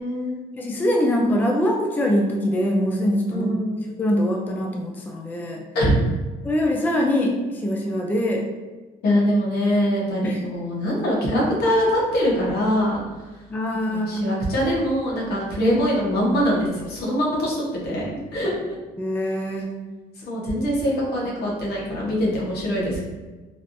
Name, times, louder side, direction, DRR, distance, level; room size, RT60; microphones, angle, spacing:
voice 1, 0.0-0.4 3.3-3.8 5.7-6.0 9.0-13.0 13.7-18.0 18.3-18.8 20.2-23.0, equal, 70° left, -4 dB, 1.1 m, -23 dB
voice 2, 0.5-3.5 4.0-5.6 6.4-8.4 10.2-10.4 13.5-14.4 19.0-19.7, equal, 10° left, 0 dB, 0.4 m, -23 dB
3.3 x 2.4 x 2.6 m, 1.3 s
cardioid pair, 110°, 17 cm